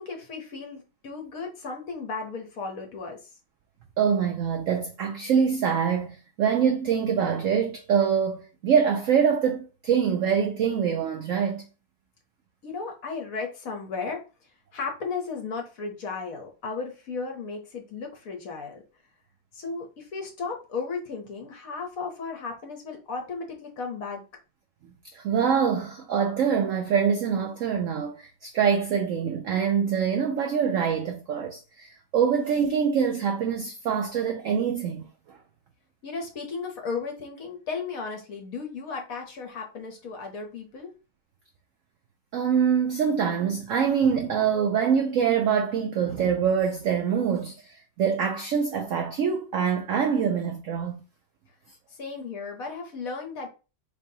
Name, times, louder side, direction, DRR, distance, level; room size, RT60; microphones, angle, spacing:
voice 1, 0.0-3.3 12.6-14.2 14.7-18.8 19.5-24.2 36.0-40.9 52.0-53.5, left 4 dB, 60° left, 1.1 m, -35 dB
voice 2, 4.0-11.6 25.1-35.4 42.3-47.5 48.0-51.0, right 7 dB, 80° right, 0.7 m, -24 dB
4.3 x 3.3 x 2.7 m
omnidirectional pair, 2.0 m